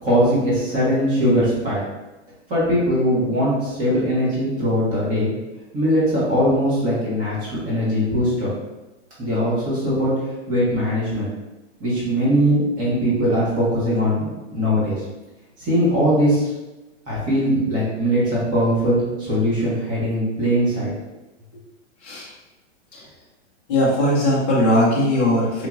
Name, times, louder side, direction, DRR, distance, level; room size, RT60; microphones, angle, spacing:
voice 1, 0.0-1.8 2.5-5.3 5.7-8.5 9.2-10.1 10.5-11.3 11.8-15.0 15.6-16.5 17.1-20.9, equal, 20° right, -8 dB, 1.3 m, -20 dB
voice 2, 23.7-25.7, left 1 dB, 10° left, -8 dB, 0.3 m, -19 dB
4.5 x 2.8 x 2.4 m, 1.1 s
hypercardioid pair, 155°, 37 cm